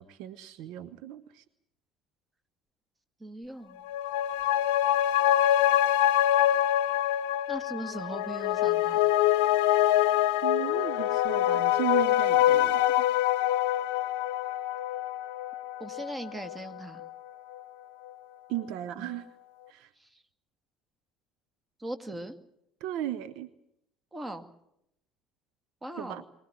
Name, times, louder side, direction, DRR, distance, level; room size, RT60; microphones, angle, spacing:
voice 1, 0.0-1.4 10.4-13.1 18.5-19.3 19.7-19.9 22.8-23.5 26.0-26.2, right 13 dB, 60° right, 13 dB, 0.9 m, -36 dB
voice 2, 3.2-3.8 7.5-9.1 15.8-17.0 19.0-19.1 20.0-20.2 21.8-22.3 24.1-24.5 25.8-26.2, right 1 dB, 15° right, 9 dB, 2.2 m, -39 dB
sound 1, 3.8-16.7 17.0-17.1, left 12 dB, 65° left, 0.8 m, -25 dB
23.5 x 18.0 x 8.9 m, 0.79 s
figure-of-eight pair, 60°, 0 cm